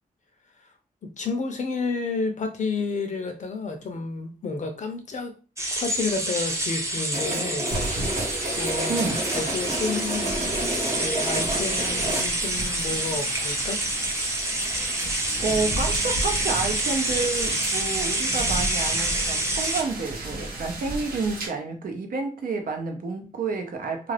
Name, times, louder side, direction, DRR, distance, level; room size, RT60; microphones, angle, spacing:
voice 1, 1.0-5.3 5.8-7.7 8.6-10.4 11.0-13.8, left 4 dB, 50° left, 0.6 m, -30 dB
sound 1, 5.6-19.8, right 1 dB, 20° right, 0.7 m, -27 dB
sound 2, 7.1-12.2, right 1 dB, 50° right, 1.1 m, -31 dB
sound 3, 7.7-21.5, right 2 dB, 85° right, 1.0 m, -34 dB
voice 2, 8.9-9.2 15.4-24.1, right 4 dB, 65° right, 0.7 m, -29 dB
2.4 x 2.4 x 3.2 m
wide cardioid pair, 135°, 15 cm